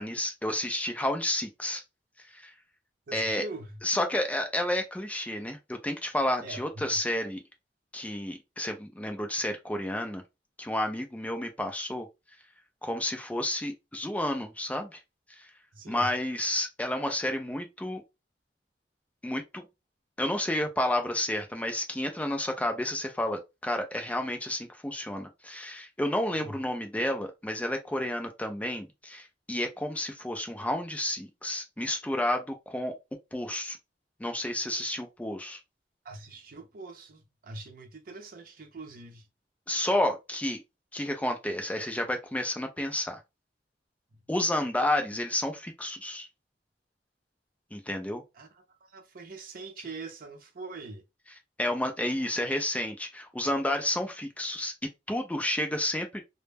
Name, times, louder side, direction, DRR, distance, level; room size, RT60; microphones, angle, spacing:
voice 1, 0.0-1.8 2.2-2.5 3.1-3.4 3.8-7.4 7.9-10.2 10.6-12.1 12.8-15.0 15.3-15.5 15.9-18.0 19.2-19.6 20.2-32.9 33.3-33.8 34.2-35.6 39.7-40.6 40.9-43.2 44.3-46.3 47.7-48.2 51.6-54.7 55.1-56.2, left 1 dB, 10° left, 0.4 m, -31 dB
voice 2, 3.1-3.8 6.4-7.0 15.7-16.1 26.3-26.5 36.0-39.3 44.1-44.2 48.3-51.0, right 3 dB, 55° right, 0.5 m, -43 dB
2.1 x 2.1 x 3.2 m
head